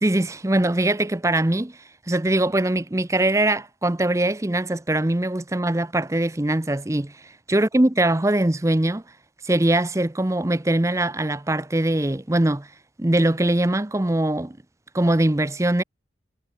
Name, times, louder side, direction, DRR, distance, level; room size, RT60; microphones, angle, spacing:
voice 1, 0.0-1.8 2.1-7.1 7.5-9.0 9.4-12.7 13.0-14.6 14.9-15.8, right 1 dB, 15° right, 0.6 m, -22 dB
head